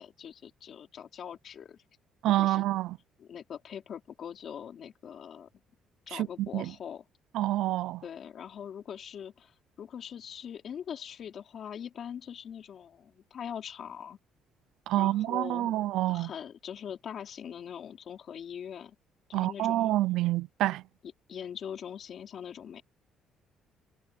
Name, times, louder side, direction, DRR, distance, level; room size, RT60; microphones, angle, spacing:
voice 1, 0.0-1.8 2.4-2.6 3.2-5.5 6.1-7.0 8.0-14.2 14.9-15.7 16.1-19.0 19.3-19.9 21.3-22.8, left 8 dB, 45° left, 4.4 m, -42 dB
voice 2, 2.2-3.0 6.1-6.7 7.3-8.0 14.9-16.3 19.3-20.8, right 15 dB, 80° right, 0.5 m, -28 dB
cardioid pair, 150°, 0 cm